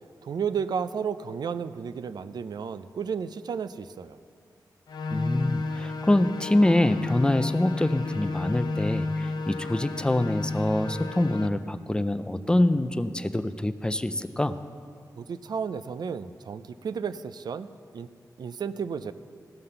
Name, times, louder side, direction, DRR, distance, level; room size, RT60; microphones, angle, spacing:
voice 1, 0.2-4.2 15.2-17.7 17.9-18.1 18.4-19.1, right 6 dB, 75° right, 12 dB, 0.4 m, -32 dB
sound 1, 4.9-11.5, left 3 dB, 80° left, 0.6 m, -31 dB
voice 2, 5.1-14.6, left 1 dB, 10° left, 12 dB, 0.3 m, -25 dB
16.5 x 5.6 x 6.7 m, 2.2 s
wide cardioid pair, 160°, 7 cm